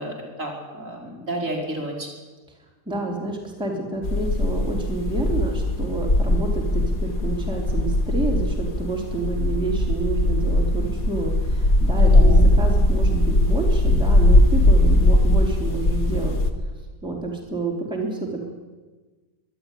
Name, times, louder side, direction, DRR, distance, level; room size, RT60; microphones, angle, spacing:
voice 1, 0.0-2.1 12.0-12.5, right 1 dB, 45° right, 0 dB, 4.6 m, -31 dB
voice 2, 2.9-16.4 17.0-18.5, right 3 dB, ahead, -1 dB, 3.2 m, -29 dB
sound 1, 4.0-16.5, left 1 dB, 50° left, 2.0 m, -19 dB
23.0 x 12.0 x 10.0 m, 1.3 s
omnidirectional pair, 1.9 m